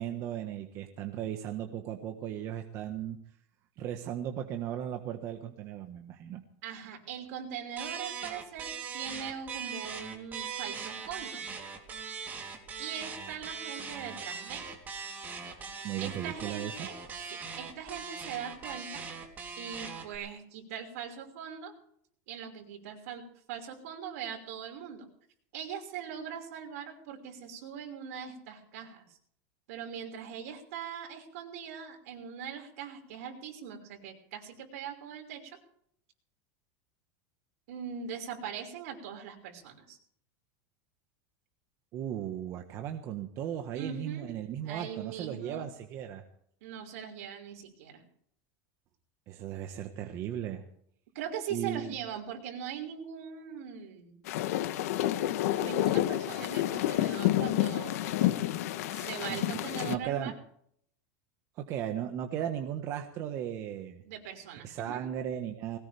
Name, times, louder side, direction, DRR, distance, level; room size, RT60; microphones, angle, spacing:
voice 1, 0.0-3.2 3.8-6.4 15.8-16.9 41.9-46.2 49.3-50.6 51.5-51.9 59.3-59.6 59.8-60.3 61.6-64.0 64.6-65.8, right 10 dB, 35° right, 4 dB, 1.5 m, -36 dB
voice 2, 6.6-11.4 12.8-14.7 16.0-17.0 17.3-19.0 19.6-21.7 22.3-25.1 25.5-29.2 29.7-35.6 37.7-40.0 43.7-44.3 44.7-45.6 46.6-48.0 51.1-54.2 55.6-58.4 58.9-60.3 64.0-65.0, right 8 dB, 70° right, 3 dB, 5.6 m, -41 dB
sound 1, 7.8-20.2, right 6 dB, 20° right, 3.3 m, -40 dB
sound 2, 54.3-60.0, left 14 dB, 75° left, 1.1 m, -29 dB
21.0 x 18.5 x 3.5 m, 0.65 s
supercardioid pair, 160°, 8 cm